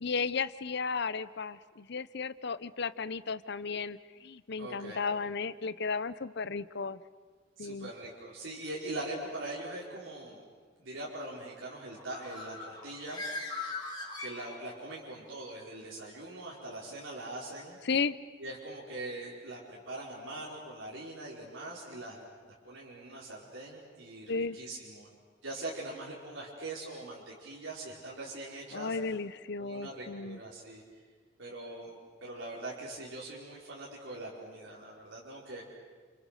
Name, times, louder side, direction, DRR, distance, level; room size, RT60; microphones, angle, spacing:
voice 1, 0.0-7.0 7.6-7.9 17.8-18.2 24.3-24.6 28.7-30.4, left 5 dB, 60° left, 16 dB, 0.8 m, -34 dB
voice 2, 4.6-5.0 7.6-10.4 10.8-13.2 14.2-17.8 18.4-25.1 25.4-29.0 29.6-30.8 31.4-31.9 32.2-35.6, right 2 dB, 90° right, -5 dB, 5.1 m, -42 dB
Bird, 11.9-14.9, left 3 dB, 25° left, 5.5 m, -40 dB
30.0 x 28.0 x 6.7 m, 1.6 s
head